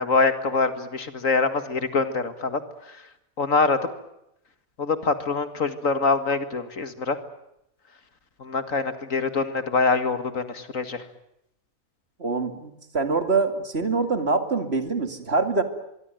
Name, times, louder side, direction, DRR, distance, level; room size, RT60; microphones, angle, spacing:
voice 1, 0.0-3.1 3.4-3.9 4.8-7.2 8.4-11.1, left 4 dB, 60° left, 10 dB, 2.3 m, -24 dB
voice 2, 12.2-15.6, right 4 dB, 45° right, 8 dB, 2.7 m, -24 dB
24.5 x 23.5 x 9.2 m, 0.81 s
omnidirectional pair, 1.5 m